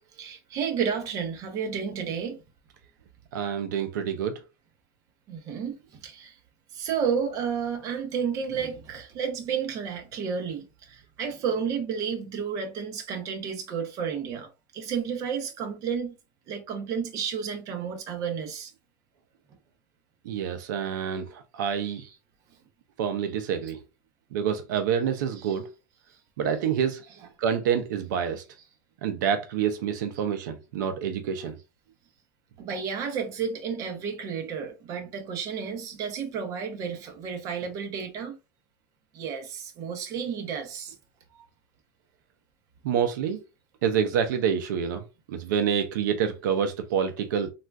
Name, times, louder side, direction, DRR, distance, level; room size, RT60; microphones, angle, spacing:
voice 1, 0.2-2.4 5.3-5.8 6.0-6.4 6.7-16.1 16.5-18.7 21.9-22.1 25.4-25.5 32.6-38.4 39.1-40.9, right 6 dB, 30° right, 0.7 m, -31 dB
voice 2, 3.3-4.4 20.2-22.0 23.0-23.8 24.3-25.7 26.4-27.0 27.4-28.4 29.0-31.6 42.8-43.4 43.8-47.5, right 8 dB, 70° right, 0.5 m, -27 dB
3.7 x 2.4 x 2.2 m
supercardioid pair, 155°, 11 cm